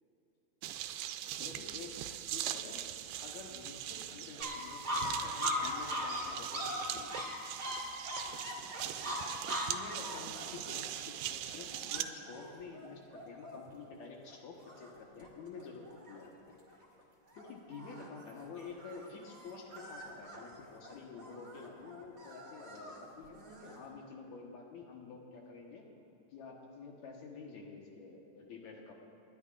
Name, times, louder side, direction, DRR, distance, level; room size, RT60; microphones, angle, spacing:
sound 1, 0.6-12.0, right 12 dB, 85° right, 2.2 m, -41 dB
voice 1, 1.4-2.0 2.3-2.8 3.2-7.3 9.6-16.6 17.3-25.9 26.3-28.9, left 4 dB, 60° left, 0 dB, 2.3 m, -49 dB
sound 2, 4.4-13.8 14.3-14.4 14.6-15.3 15.5-16.2 16.7-17.0 17.3-23.9, left 1 dB, 35° right, 1.5 m, -41 dB
30.0 x 10.5 x 2.5 m, 2.8 s
omnidirectional pair, 4.0 m